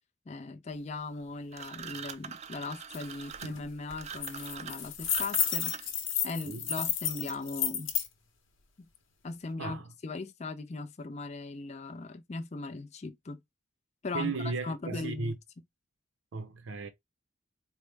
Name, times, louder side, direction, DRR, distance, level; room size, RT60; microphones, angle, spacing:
voice 1, 0.3-5.8 6.2-7.9 8.8-8.9 9.2-13.4 14.0-14.3 14.6-15.3, left 3 dB, 35° left, 0.4 m, -39 dB
sound 1, 1.5-6.1, right 8 dB, 35° right, 0.3 m, -43 dB
sound 2, 2.9-3.0 3.3-3.6 3.9-8.1, left 8 dB, 75° left, 0.9 m, -32 dB
voice 2, 14.1-15.4 16.3-16.9, right 4 dB, 70° right, 0.6 m, -35 dB
4.3 x 2.1 x 3.3 m
head